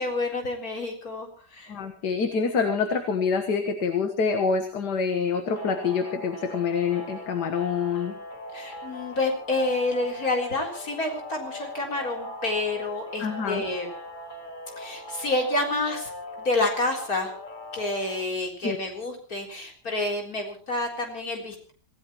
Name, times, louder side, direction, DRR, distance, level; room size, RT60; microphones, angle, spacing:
voice 1, 0.0-1.7 8.5-13.9 14.8-16.1 16.4-17.3 17.7-21.7, left 2 dB, 55° left, 2 dB, 4.4 m, -29 dB
voice 2, 1.7-8.2 13.2-13.6 18.6-18.8, left 5 dB, 70° left, 7 dB, 2.1 m, -26 dB
sound 1, 5.5-18.2, left 1 dB, 30° left, 2.0 m, -40 dB
26.5 x 16.5 x 3.1 m, 0.37 s
omnidirectional pair, 1.9 m